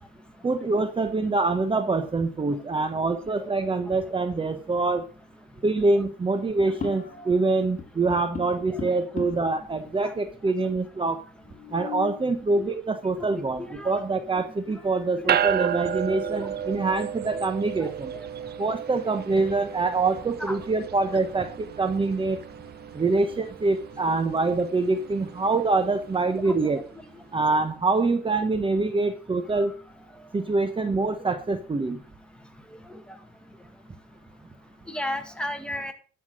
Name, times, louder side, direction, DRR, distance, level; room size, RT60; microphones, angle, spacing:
voice 1, 0.4-5.0 5.6-11.2 11.7-18.1 18.6-22.4 22.9-26.8 27.3-29.7 30.3-32.0, right 3 dB, 25° right, 9 dB, 1.1 m, -25 dB
sound 1, 6.6-7.4 7.8-9.6 10.3-10.4 10.6-10.7 11.4-12.3 14.1-14.2 14.7-15.2 15.6-15.7 16.2-17.1, left 6 dB, 35° left, 2.0 m, -39 dB
voice 2, 13.6-13.9 15.2-16.5 17.3-17.4 17.8-17.9 20.4-20.6 26.4-26.6 34.9-35.9, left 1 dB, 5° left, 6 dB, 1.9 m, -35 dB
sound 2, 15.3-26.9, right 9 dB, 55° right, 0.6 m, -33 dB
13.5 x 5.9 x 6.3 m, 0.40 s
cardioid pair, 90°, 20 cm